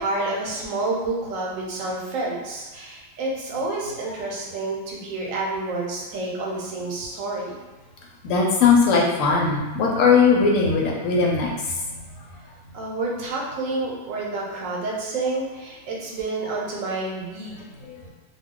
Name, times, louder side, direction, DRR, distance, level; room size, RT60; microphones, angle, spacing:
voice 1, 0.0-7.5 12.7-17.6, right 2 dB, 80° right, -2 dB, 1.0 m, -29 dB
voice 2, 8.2-11.5 11.8-11.9 17.8-18.0, left 5 dB, 80° left, -1 dB, 1.0 m, -19 dB
2.3 x 2.3 x 3.6 m, 1.2 s
omnidirectional pair, 1.4 m